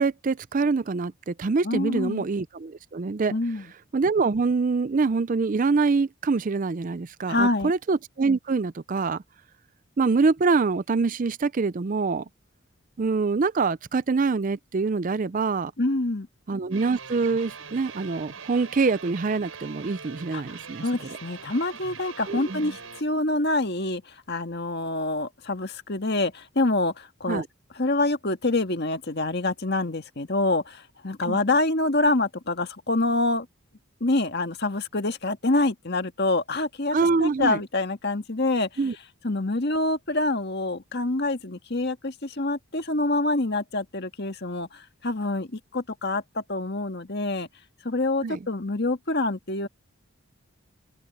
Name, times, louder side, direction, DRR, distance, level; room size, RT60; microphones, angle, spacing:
voice 1, 0.0-3.3 3.9-9.2 10.0-12.3 13.0-15.7 16.5-20.8 22.3-22.6 27.3-27.5 31.2-31.4 36.9-37.6 38.8-38.9 48.2-48.4, right 4 dB, 35° right, 0.4 m, -25 dB
voice 2, 1.6-2.3 3.3-3.7 7.3-7.7 15.8-16.3 20.3-27.4 27.8-33.5 34.0-38.7 39.2-47.5 47.8-49.7, left 2 dB, 50° left, 1.8 m, -26 dB
sound 1, 16.7-23.0, right 5 dB, 70° right, 5.4 m, -42 dB
head